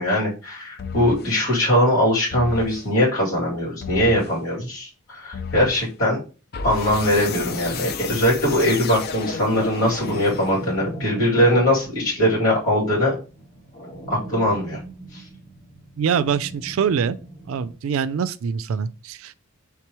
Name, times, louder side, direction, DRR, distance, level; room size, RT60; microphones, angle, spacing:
voice 1, 0.0-6.2 6.6-13.2 14.1-14.8, equal, 75° left, 2.5 m, -21 dB
sound 1, 0.8-1.3 2.3-2.9 3.8-4.4 5.3-5.9 6.5-10.9, left 5 dB, 45° left, 0.4 m, -32 dB
sound 2, 9.9-17.7, right 2 dB, 30° left, 2.2 m, -40 dB
voice 2, 16.0-17.2 17.5-19.4, right 7 dB, 70° right, 0.3 m, -24 dB
4.7 x 3.5 x 3.0 m
head